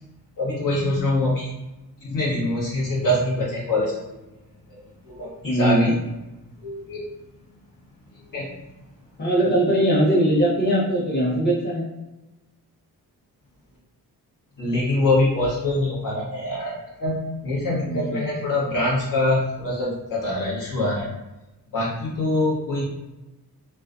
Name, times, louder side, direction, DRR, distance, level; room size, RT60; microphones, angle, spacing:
voice 1, 0.4-1.5 2.0-3.9 4.7-5.9 6.6-7.1 8.3-8.5 14.6-16.7 17.0-21.1 21.7-22.9, left 1 dB, 55° left, -6 dB, 1.1 m, -24 dB
voice 2, 5.4-5.9 9.2-11.8 17.8-18.3, right 1 dB, 25° left, -6 dB, 0.9 m, -20 dB
2.4 x 2.2 x 2.4 m, 1.0 s
cardioid pair, 65°, 38 cm